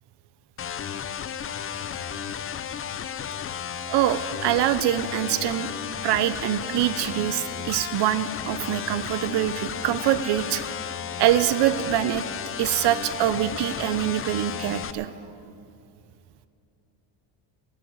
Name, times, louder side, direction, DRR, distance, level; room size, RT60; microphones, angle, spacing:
sound 1, 0.6-14.9, left 8 dB, 30° left, 0.5 m, -33 dB
voice 1, 3.9-5.7 6.0-10.6 11.2-12.2 12.6-15.1, right 12 dB, 55° right, 13 dB, 0.8 m, -24 dB
13.5 x 9.2 x 9.3 m, 2.5 s
cardioid pair, 120°, 48 cm